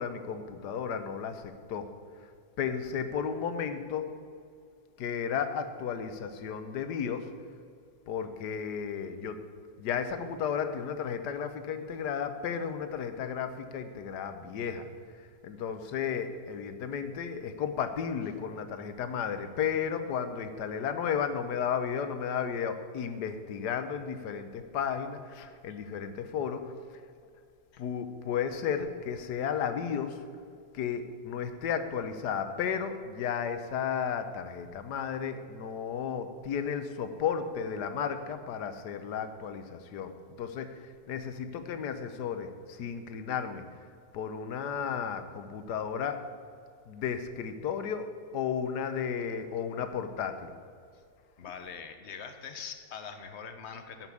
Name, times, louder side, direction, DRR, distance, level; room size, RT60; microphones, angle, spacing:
voice 1, 0.0-1.4 1.7-1.9 2.6-4.1 5.0-7.3 8.1-9.4 9.8-14.9 15.4-26.6 27.8-30.2 30.7-40.1 40.4-40.7 41.1-43.6 44.1-46.2 46.9-48.1 48.3-50.5, left 7 dB, 70° left, 9 dB, 1.3 m, -33 dB
voice 2, 51.4-54.1, left 6 dB, 50° left, 7 dB, 0.9 m, -43 dB
10.5 x 5.7 x 8.2 m, 2.2 s
omnidirectional pair, 2.0 m